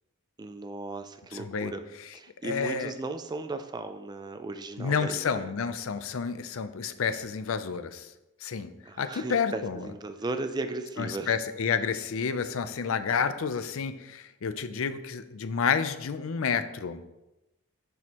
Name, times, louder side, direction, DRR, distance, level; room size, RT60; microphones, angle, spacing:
voice 1, 0.4-1.8 2.1-5.5 8.9-11.4, right 2 dB, 20° right, 9 dB, 0.3 m, -36 dB
voice 2, 1.3-1.7 2.4-2.9 4.8-8.1 8.4-8.7 9.0-9.8 11.0-17.0, left 6 dB, 60° left, 11 dB, 0.5 m, -30 dB
6.9 x 6.3 x 2.9 m, 0.97 s
head